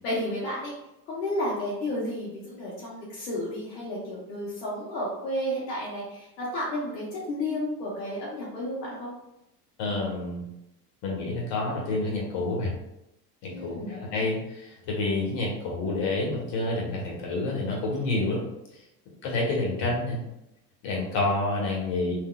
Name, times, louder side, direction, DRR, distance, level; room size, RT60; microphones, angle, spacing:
voice 1, 0.0-0.7 1.1-9.1 13.5-14.0, left 1 dB, 75° left, -6 dB, 1.1 m, -32 dB
voice 2, 9.8-10.4 11.0-12.7 13.4-18.4 19.2-20.2 20.8-22.1, left 2 dB, 55° left, -2 dB, 1.4 m, -28 dB
3.8 x 2.8 x 2.3 m, 0.88 s
hypercardioid pair, 70°, 49 cm